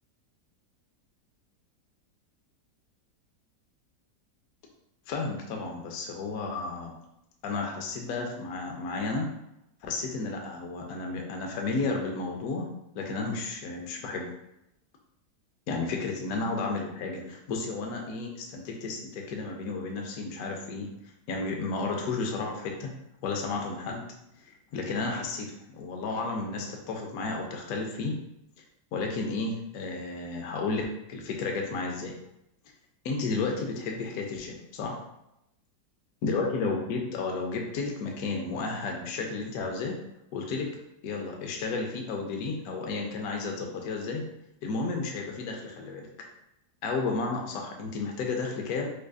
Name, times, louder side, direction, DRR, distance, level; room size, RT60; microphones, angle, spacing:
voice 1, 5.1-6.9 7.4-9.3 9.8-12.7 12.9-14.3 15.7-20.9 21.3-22.9 23.2-24.0 24.5-25.5 25.7-28.1 28.9-32.1 33.0-35.0 36.2-39.9 40.3-40.7 41.0-44.2 44.6-46.1 46.8-48.9, left 3 dB, 70° left, 1 dB, 1.0 m, -32 dB
4.9 x 2.4 x 2.3 m, 0.84 s
omnidirectional pair, 1.8 m